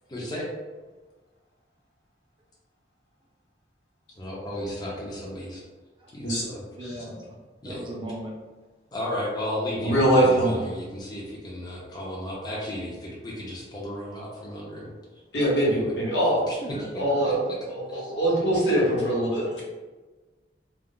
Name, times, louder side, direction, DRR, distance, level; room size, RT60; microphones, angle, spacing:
voice 1, 0.1-0.5 4.2-5.6 6.1-6.6 7.6-7.8 8.9-14.9 15.7-15.9 16.4-16.6 17.2-17.3 17.9-18.1, left 1 dB, 25° left, -4 dB, 0.5 m, -34 dB
voice 2, 6.8-7.3 7.6-8.3 16.6-17.2, right 1 dB, 30° right, -2 dB, 0.5 m, -37 dB
voice 3, 9.8-10.6 15.3-16.5 17.0-17.4 17.7-19.6, right 1 dB, 70° left, -6 dB, 1.0 m, -23 dB
2.3 x 2.0 x 3.6 m, 1.3 s
head